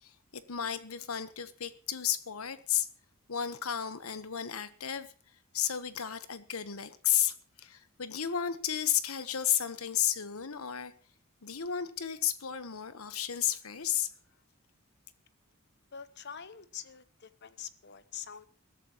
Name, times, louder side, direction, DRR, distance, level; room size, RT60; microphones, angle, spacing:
voice 1, 0.0-2.9 3.3-5.1 5.5-10.9 11.4-14.1, left 10 dB, 90° left, 1.1 m, -33 dB
voice 2, 15.9-18.5, left 8 dB, 55° left, 0.9 m, -45 dB
21.0 x 13.0 x 3.1 m
head